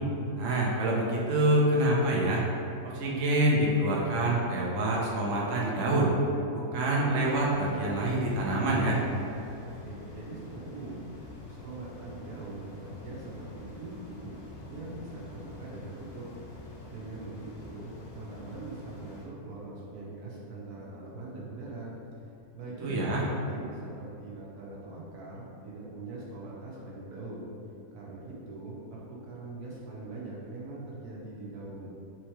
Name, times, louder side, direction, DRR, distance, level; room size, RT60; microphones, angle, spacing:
voice 1, 0.4-2.4 2.8-6.1 6.5-9.0 22.8-23.2, right 1 dB, 60° right, -3 dB, 0.9 m, -26 dB
sound 1, 7.1-19.3, left 2 dB, 55° left, 0.4 m, -47 dB
voice 2, 9.8-11.0 11.5-14.3 14.7-16.3 16.9-21.9 22.5-27.5 27.9-31.9, right 2 dB, 80° right, -5 dB, 1.4 m, -42 dB
3.6 x 3.1 x 4.5 m, 2.7 s
omnidirectional pair, 1.7 m